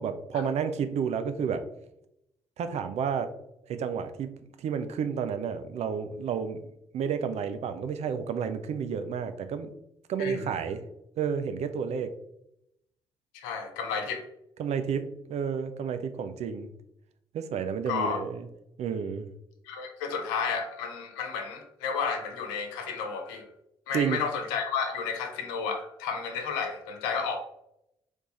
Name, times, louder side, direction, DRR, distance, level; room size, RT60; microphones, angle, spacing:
voice 1, 0.0-1.6 2.6-3.3 3.7-4.3 4.6-6.6 6.9-9.7 10.1-10.8 11.2-12.1 14.6-16.7 17.3-18.5 18.8-19.3 23.9-24.2, right 7 dB, 55° right, 9 dB, 0.5 m, -31 dB
voice 2, 13.3-14.2 17.9-18.2 19.6-23.5 23.9-27.4, left 6 dB, 75° left, 4 dB, 0.7 m, -32 dB
3.4 x 3.3 x 4.0 m, 0.79 s
hypercardioid pair, 40°, 13 cm